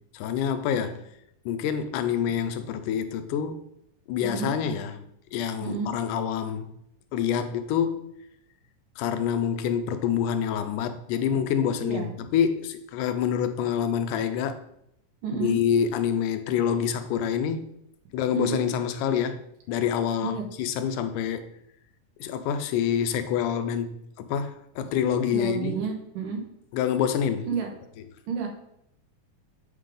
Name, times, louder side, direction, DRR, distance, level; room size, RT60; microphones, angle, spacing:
voice 1, 0.1-1.0 1.5-3.6 4.1-5.0 5.3-6.7 7.1-8.1 9.0-14.6 15.3-17.7 18.1-19.4 19.7-21.5 22.2-25.8 26.7-27.5, left 8 dB, 80° left, 2.1 m, -27 dB
voice 2, 4.2-4.5 5.6-5.9 11.8-12.1 15.2-15.6 18.3-18.6 20.2-20.4 25.3-26.4 27.4-27.7 28.3-28.5, right 6 dB, 85° right, 2.8 m, -30 dB
8.1 x 3.8 x 5.0 m
omnidirectional pair, 3.7 m